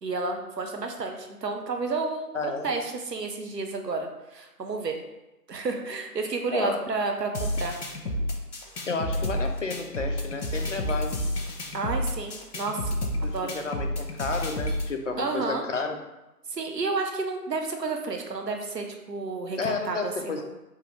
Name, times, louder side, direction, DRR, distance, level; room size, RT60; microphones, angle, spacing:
voice 1, 0.0-5.0 5.5-7.8 11.7-13.6 15.2-15.7 16.5-20.4, right 3 dB, 85° right, 3 dB, 0.8 m, -31 dB
voice 2, 2.3-2.7 6.5-6.8 8.9-11.2 13.2-16.0 19.5-20.4, left 4 dB, 50° left, 4 dB, 0.5 m, -31 dB
sound 1, 7.3-14.9, left 1 dB, 70° left, 0.9 m, -30 dB
3.6 x 3.0 x 3.1 m, 0.99 s
figure-of-eight pair, 155°, 48 cm